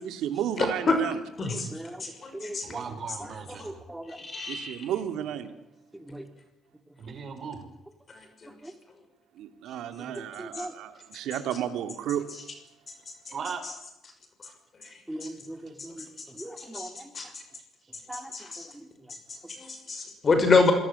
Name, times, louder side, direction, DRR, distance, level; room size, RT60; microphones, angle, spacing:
voice 1, 0.0-1.2 2.3-2.4 4.5-5.5 9.3-12.3, right 10 dB, 85° right, 9 dB, 2.6 m, -32 dB
voice 2, 0.6-1.0 1.4-1.7 2.0-2.7 4.1-4.9 8.1-8.5 10.6-10.7 13.3-13.4 14.8-15.3 16.0-16.3 16.6-17.3 18.3-18.7 19.3-20.7, left 4 dB, 40° left, 6 dB, 6.0 m, -27 dB
voice 3, 1.5-2.0 2.3-2.8 3.2-4.2 5.9-6.3 8.5-8.7 10.0-10.7 15.1-17.3 18.1-18.3 18.7-18.9, right 1 dB, 10° right, 7 dB, 3.9 m, -41 dB
voice 4, 2.6-3.8 7.0-7.7 13.3-13.6 15.1-15.3, right 6 dB, 55° right, 8 dB, 5.1 m, -37 dB
26.5 x 18.5 x 8.4 m, 0.88 s
cardioid pair, 90°, 0 cm